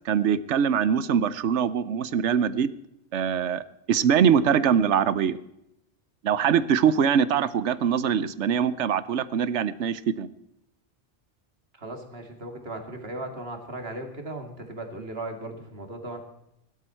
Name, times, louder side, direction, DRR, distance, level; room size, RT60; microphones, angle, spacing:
voice 1, 0.0-2.7 3.1-3.6 3.9-5.4 6.2-10.3, right 8 dB, 85° right, 16 dB, 1.1 m, -23 dB
voice 2, 11.8-16.2, right 2 dB, 60° right, 5 dB, 2.5 m, -37 dB
16.5 x 12.5 x 4.4 m, 0.82 s
omnidirectional pair, 1.2 m